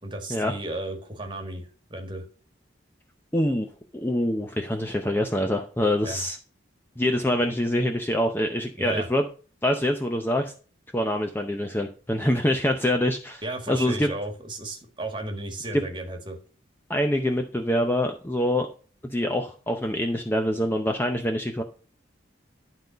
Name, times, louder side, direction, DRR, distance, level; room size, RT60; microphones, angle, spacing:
voice 1, 0.0-2.2 6.0-6.2 8.8-9.1 13.4-16.4, right 2 dB, 25° right, 3 dB, 1.8 m, -34 dB
voice 2, 3.3-3.7 3.9-6.4 7.0-9.2 9.6-10.5 10.9-13.4 13.7-14.1 15.7-15.8 16.9-18.7 19.0-21.6, left 1 dB, 10° left, 4 dB, 0.6 m, -25 dB
11.5 x 3.9 x 5.0 m, 0.38 s
head